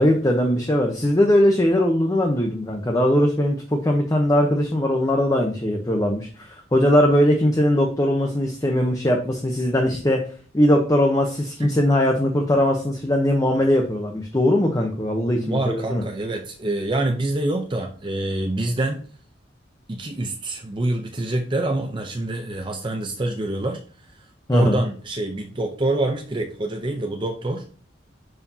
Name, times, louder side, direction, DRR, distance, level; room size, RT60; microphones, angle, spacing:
voice 1, 0.0-10.2 10.5-16.0 24.5-24.8, left 1 dB, 20° left, 2 dB, 0.8 m, -20 dB
voice 2, 15.2-19.0 19.9-27.7, right 2 dB, 25° right, 3 dB, 0.6 m, -26 dB
11.0 x 4.7 x 2.8 m, 0.41 s
head